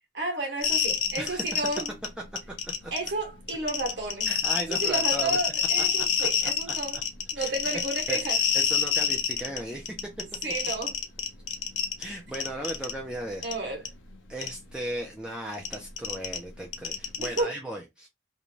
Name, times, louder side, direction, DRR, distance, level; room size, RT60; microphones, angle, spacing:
voice 1, 0.1-1.9 2.9-4.3 4.7-7.0 7.3-8.4 10.4-10.9 13.4-13.8 17.2-17.6, right 2 dB, 70° right, 1.0 m, -31 dB
sound 1, 0.6-2.1 2.4-3.1 3.5-9.6 9.9-12.0 12.3-12.9 13.4-13.5 13.9-14.0 14.4-14.5 15.5-17.4, left 7 dB, 90° left, 0.6 m, -26 dB
voice 2, 4.3-5.4 5.8-5.9 6.2-6.3 7.4-7.5 8.1-8.3 8.5-10.0 12.0-13.4 14.3-18.1, right 1 dB, 5° right, 0.4 m, -36 dB
2.5 x 2.2 x 3.0 m
head